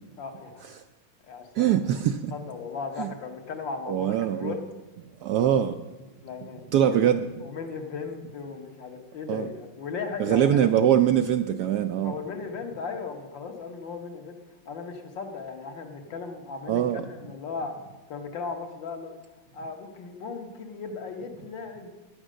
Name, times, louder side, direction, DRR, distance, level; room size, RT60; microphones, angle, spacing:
voice 1, 0.2-0.6 1.2-1.8 2.3-4.7 6.2-7.0 7.4-10.7 12.0-14.4 14.7-17.8 18.1-19.2 19.5-21.9, left 5 dB, 70° left, 4 dB, 2.0 m, -37 dB
voice 2, 1.6-2.3 3.0-3.1 3.9-4.6 5.2-5.7 6.7-7.2 9.3-9.4 10.2-12.1 16.7-17.0, right 10 dB, 75° right, 8 dB, 0.9 m, -22 dB
10.0 x 8.8 x 6.3 m, 1.1 s
omnidirectional pair, 2.2 m